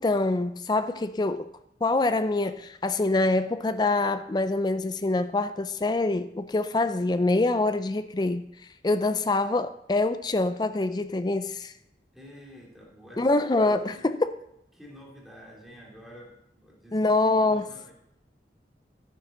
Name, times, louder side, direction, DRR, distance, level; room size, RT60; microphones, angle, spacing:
voice 1, 0.0-1.5 1.8-8.5 8.8-11.7 13.2-14.3 16.9-17.7, left 2 dB, 25° left, 0.4 m, -25 dB
voice 2, 12.1-13.3 13.6-14.0 14.7-17.9, equal, ahead, 2.7 m, -49 dB
13.5 x 9.4 x 3.8 m
head